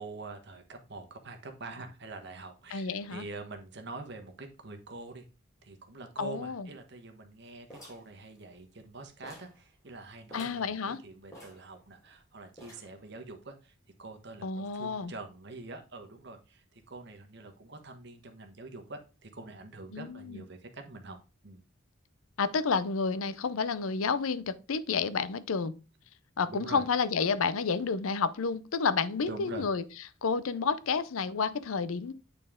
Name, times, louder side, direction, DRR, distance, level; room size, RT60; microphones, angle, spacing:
voice 1, 0.0-5.2 5.6-13.7 14.0-21.2 21.4-21.6 26.5-26.8 29.2-29.7, right 2 dB, 50° right, 1.2 m, -45 dB
voice 2, 2.7-3.2 6.2-6.7 10.3-11.0 14.4-15.1 19.9-20.4 22.4-25.7 26.4-29.8 30.2-32.1, left 5 dB, 75° left, 0.5 m, -30 dB
sound 1, 7.7-8.9 9.2-9.6 9.9-10.0 10.3-10.7 11.3-12.2 12.6-13.0, equal, 15° left, 3.0 m, -52 dB
8.9 x 4.2 x 3.6 m
head